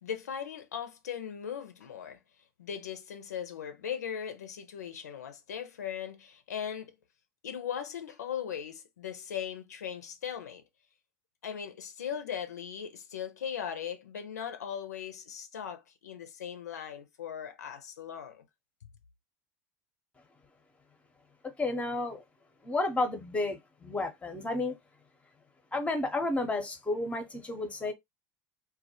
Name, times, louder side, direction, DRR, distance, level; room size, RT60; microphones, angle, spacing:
voice 1, 0.0-2.2 2.6-7.0 7.4-10.6 11.4-18.4, left 8 dB, 85° left, 0.4 m, -38 dB
voice 2, 21.6-22.2 22.6-24.8 25.7-27.9, left 2 dB, 15° left, 0.6 m, -31 dB
2.2 x 2.1 x 2.6 m
hypercardioid pair, 80°, 9 cm